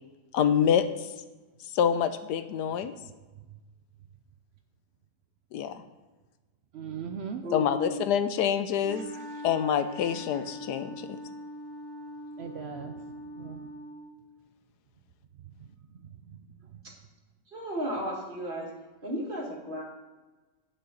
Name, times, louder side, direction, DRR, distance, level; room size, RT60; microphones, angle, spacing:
voice 1, 0.3-1.1 1.7-3.0 5.5-5.7 7.5-9.1 9.4-11.1, left 8 dB, 85° left, 10 dB, 1.2 m, -26 dB
voice 2, 6.7-7.4 9.0-9.5 10.1-10.2 12.4-12.9 13.4-13.7 16.2-16.4, right 7 dB, 85° right, 6 dB, 0.5 m, -40 dB
voice 3, 7.4-8.0 17.5-18.7 19.0-19.8, equal, 30° right, -2 dB, 2.3 m, -34 dB
Wind instrument woodwind instrument, 8.8-14.2, equal, 65° right, 1.8 m, -42 dB
9.8 x 7.9 x 3.9 m, 1.2 s
omnidirectional pair, 1.7 m